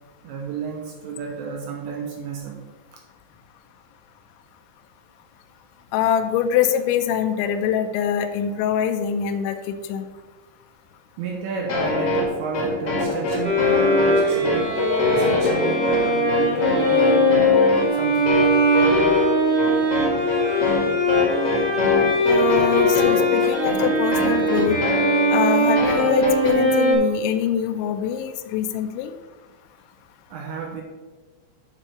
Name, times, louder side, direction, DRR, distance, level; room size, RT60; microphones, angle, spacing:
voice 1, 0.2-2.6 11.2-14.8 15.1-18.5 30.3-30.8, right 5 dB, 80° right, 0 dB, 2.8 m, -32 dB
voice 2, 5.9-10.1 22.3-24.8 25.3-29.1, left 9 dB, 85° left, 7 dB, 2.7 m, -24 dB
sound 1, 11.7-26.5, left 2 dB, 65° left, 1.4 m, -23 dB
Bowed string instrument, 13.4-26.9, equal, 45° right, 0.8 m, -21 dB
10.0 x 3.6 x 6.7 m, 1.3 s
omnidirectional pair, 6.0 m